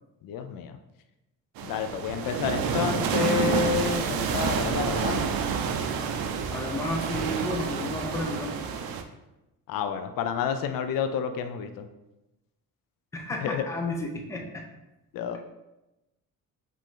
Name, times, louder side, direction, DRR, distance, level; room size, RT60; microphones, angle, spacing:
voice 1, 0.2-0.8 1.6-5.3 9.7-11.9 13.4-13.6 15.1-15.4, left 7 dB, 70° left, 8 dB, 0.5 m, -29 dB
sound 1, 1.6-9.0, right 6 dB, 80° right, 0.5 m, -29 dB
voice 2, 6.5-8.6 13.1-14.6, left 1 dB, 10° left, 2 dB, 0.4 m, -32 dB
5.1 x 2.7 x 3.7 m, 0.96 s
cardioid pair, 150°, 35 cm